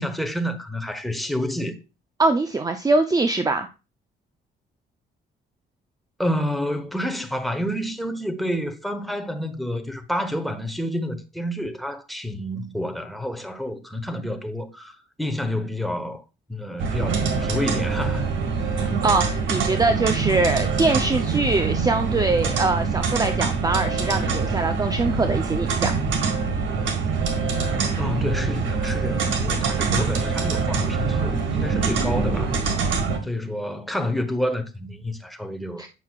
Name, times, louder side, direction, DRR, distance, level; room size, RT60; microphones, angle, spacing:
voice 1, 0.0-1.8 6.2-16.2 16.5-18.3 28.0-32.6 33.2-35.8, left 1 dB, ahead, 1.1 m, -29 dB
voice 2, 2.2-3.7 19.0-25.9 35.8-35.9, right 3 dB, 20° right, 0.6 m, -23 dB
sound 1, 16.8-33.2, right 5 dB, 75° right, 1.7 m, -24 dB
9.2 x 5.7 x 2.4 m
cardioid pair, 90°, 20 cm